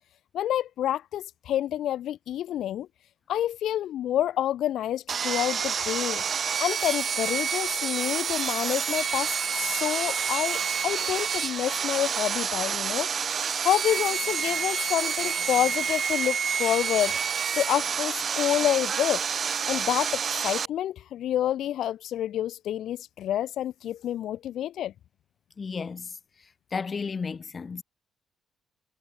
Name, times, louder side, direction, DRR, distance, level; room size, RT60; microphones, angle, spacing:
voice 1, 0.3-2.9 3.3-6.2 6.6-13.1 13.6-17.2 17.6-19.2 19.7-24.9, left 11 dB, 75° left, 0.8 m, -28 dB
Sawing, 5.1-20.7, right 7 dB, 50° right, 6.9 m, -28 dB
voice 2, 25.6-26.1 26.7-27.8, left 5 dB, 35° left, 5.4 m, -33 dB
cardioid pair, 90°, 0 cm